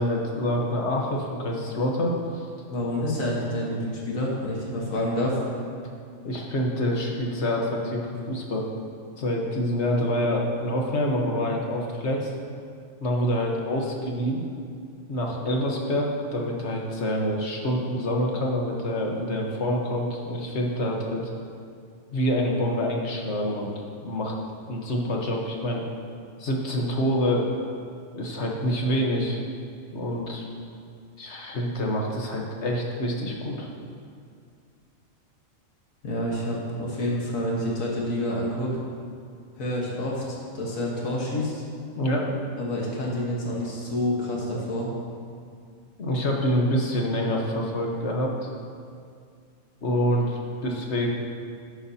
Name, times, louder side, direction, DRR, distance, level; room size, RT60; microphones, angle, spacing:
voice 1, 0.0-2.5 6.2-8.6 9.2-12.3 13.0-14.4 15.1-21.2 22.1-23.7 24.0-24.3 24.7-25.8 26.4-27.5 28.1-29.4 29.9-30.4 31.2-33.7 42.0-42.3 46.0-48.5 49.8-51.1, equal, 60° left, 0 dB, 1.5 m, -26 dB
voice 2, 2.7-5.4 36.0-38.8 39.6-41.6 42.6-44.9, left 1 dB, 85° left, -3 dB, 1.8 m, -28 dB
12.5 x 9.7 x 2.8 m, 2.3 s
omnidirectional pair, 1.4 m